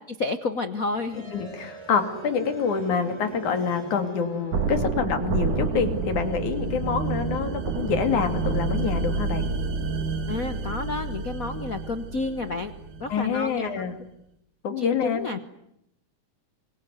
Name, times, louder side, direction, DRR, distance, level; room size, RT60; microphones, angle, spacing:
voice 1, 0.1-1.3 6.7-6.8 10.3-12.7 13.0-13.8 14.8-15.4, left 3 dB, 90° left, 10 dB, 0.7 m, -30 dB
sound 1, 0.8-12.7, right 2 dB, 10° right, 4.3 m, -42 dB
voice 2, 1.3-9.4 13.1-13.9 14.6-15.3, left 6 dB, 70° left, 8 dB, 4.0 m, -26 dB
sound 2, 4.5-13.4, right 4 dB, 80° right, 3.8 m, -29 dB
26.5 x 23.5 x 9.5 m, 0.77 s
omnidirectional pair, 3.5 m